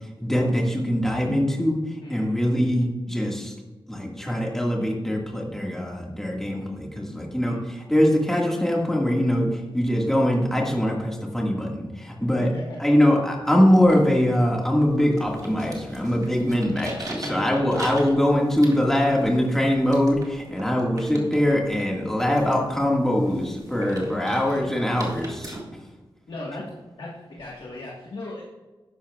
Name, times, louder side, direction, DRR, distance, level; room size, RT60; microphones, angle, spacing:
voice 1, 0.2-1.8 2.1-3.5 3.9-12.5 12.8-25.6, equal, 5° left, -1 dB, 1.8 m, -22 dB
voice 2, 2.0-2.4 7.4-7.6 12.3-12.8 17.2-17.6 24.0-24.2 26.3-26.6 27.0-27.1 27.4-28.4, left 2 dB, 70° left, -4 dB, 1.5 m, -37 dB
sound 1, 13.8-25.6, right 2 dB, 45° right, 1.9 m, -42 dB
12.0 x 10.5 x 2.4 m, 1.2 s
wide cardioid pair, 160°, 9 cm